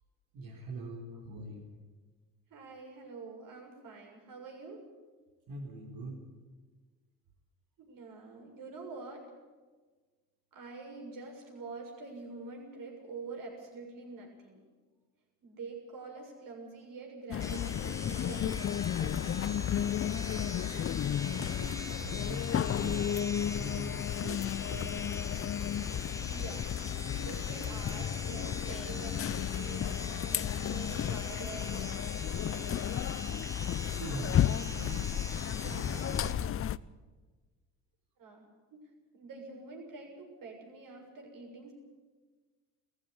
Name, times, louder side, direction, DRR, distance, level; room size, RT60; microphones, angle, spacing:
voice 1, 0.3-1.7 5.5-6.2 21.3-23.1 23.5-25.2 34.0-36.6, right 1 dB, 75° right, -4 dB, 4.3 m, -43 dB
voice 2, 2.5-4.8 7.9-9.2 10.5-14.7 15.4-19.5 26.2-33.0 38.2-41.7, right 4 dB, 60° right, 1 dB, 6.9 m, -47 dB
sound 1, 17.3-36.8, left 10 dB, 40° left, 0.6 m, -33 dB
sound 2, 17.4-36.3, left 2 dB, 10° left, 2.0 m, -43 dB
18.0 x 14.5 x 9.9 m, 1.4 s
supercardioid pair, 80°, 36 cm